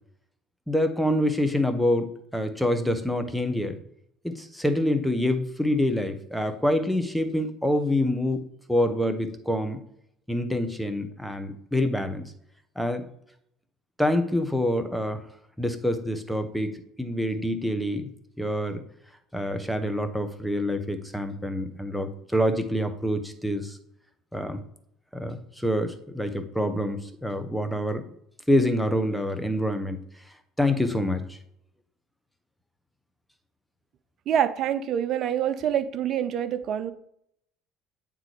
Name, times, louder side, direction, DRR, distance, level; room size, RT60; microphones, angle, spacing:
voice 1, 0.7-3.8 4.2-8.4 8.7-9.8 10.3-12.2 12.8-13.0 14.0-15.2 15.6-18.1 18.4-18.8 19.3-23.8 24.3-24.6 25.1-28.0 28.5-30.0 30.6-31.4, left 1 dB, ahead, 7 dB, 0.9 m, -26 dB
voice 2, 34.3-36.9, right 9 dB, 50° right, 13 dB, 0.5 m, -26 dB
8.9 x 3.7 x 3.2 m, 0.74 s
hypercardioid pair, 60°, 0 cm